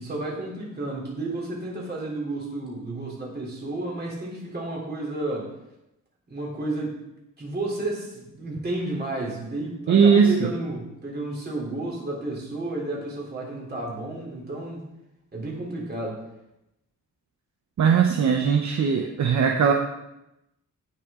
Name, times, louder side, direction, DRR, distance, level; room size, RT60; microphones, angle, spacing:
voice 1, 0.0-5.5 6.3-7.0 7.4-14.8 15.3-16.2, right 2 dB, 30° right, -3 dB, 3.4 m, -32 dB
voice 2, 9.9-10.5 17.8-19.7, right 6 dB, 60° right, 3 dB, 0.8 m, -19 dB
16.5 x 6.3 x 3.7 m, 0.88 s
wide cardioid pair, 175°, 32 cm